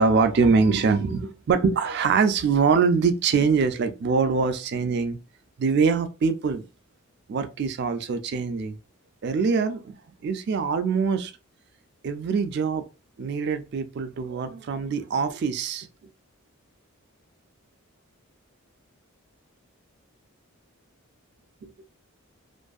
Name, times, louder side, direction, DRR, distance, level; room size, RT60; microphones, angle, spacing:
voice 1, 0.0-5.2 5.6-6.6 7.3-8.8 9.2-11.3 12.0-12.9 13.2-15.9 21.6-21.7, right 5 dB, 50° right, 0.3 m, -23 dB
2.5 x 2.5 x 2.3 m
head